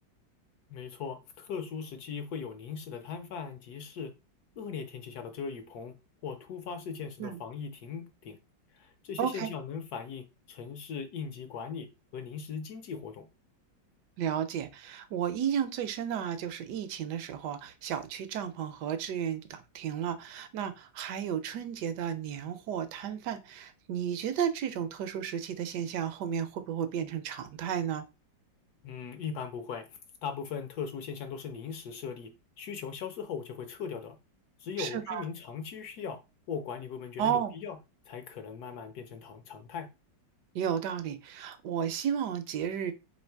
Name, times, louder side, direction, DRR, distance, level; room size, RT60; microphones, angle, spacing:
voice 1, 0.7-4.1 4.6-5.9 6.2-8.4 8.7-13.3 28.8-34.2 34.6-36.2 36.5-37.8 38.1-39.9, left 6 dB, 70° left, 1.0 m, -39 dB
voice 2, 9.2-9.5 14.2-28.0 34.8-35.3 37.2-37.5 40.5-42.9, right 9 dB, 75° right, 1.1 m, -33 dB
3.2 x 2.8 x 4.4 m
omnidirectional pair, 2.1 m